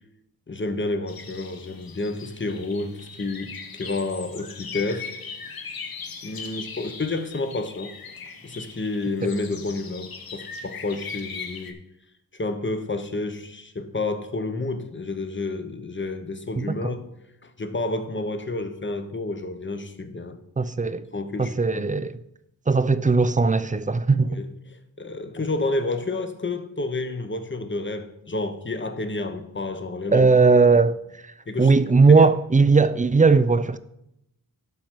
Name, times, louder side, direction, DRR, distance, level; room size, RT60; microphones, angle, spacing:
voice 1, 0.5-5.1 6.2-8.0 8.4-11.8 12.3-17.1 17.4-20.4 21.1-21.9 24.4-24.5 25.0-30.3 31.5-31.7 32.1-32.3, left 2 dB, 30° left, 1.0 m, -30 dB
sound 1, 1.1-11.7, left 5 dB, 65° left, 1.1 m, -39 dB
voice 2, 16.6-16.9 20.6-21.1 21.4-22.2 22.7-24.4 30.1-33.8, right 4 dB, 20° right, 0.4 m, -19 dB
12.0 x 5.3 x 4.6 m
wide cardioid pair, 80°, 39 cm